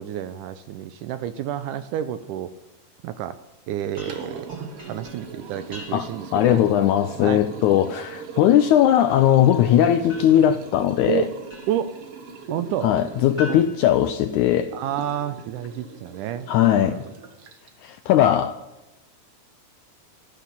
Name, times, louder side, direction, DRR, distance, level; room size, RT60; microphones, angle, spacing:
voice 1, 0.0-2.5 3.0-3.4 3.7-6.6 7.2-7.4 11.1-11.3 11.7-12.0 12.5-12.9 13.5-13.7 14.7-17.1, right 10 dB, 80° right, 12 dB, 1.9 m, -30 dB
Liquid, 3.8-17.9, right 5 dB, 60° right, 1.7 m, -40 dB
sound 1, 4.0-6.3 10.1-12.0 13.4-14.8, left 2 dB, 15° right, 6.6 m, -43 dB
voice 2, 5.9-11.3 12.8-14.7 16.5-17.0 17.8-18.6, left 11 dB, 80° left, 9 dB, 1.7 m, -19 dB
13.0 x 12.0 x 7.1 m, 0.98 s
omnidirectional pair, 4.1 m